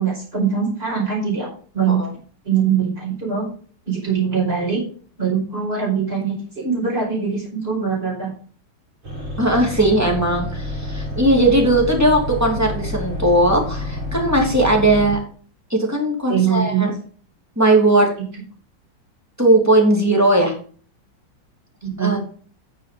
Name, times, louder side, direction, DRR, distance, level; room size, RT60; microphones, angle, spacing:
voice 1, 0.0-1.5 1.7-2.1 2.4-3.4 3.9-4.8 5.2-8.3 16.3-16.9 21.8-22.2, right 7 dB, 25° right, -3 dB, 5.1 m, -22 dB
sound 1, 9.0-15.2, left 1 dB, 65° right, 4.8 m, -28 dB
voice 2, 9.4-15.2 15.7-16.9 17.6-18.1 19.4-20.5 22.0-22.2, right 1 dB, 5° right, 0 dB, 2.7 m, -17 dB
9.6 x 7.0 x 5.2 m, 0.43 s
omnidirectional pair, 2.4 m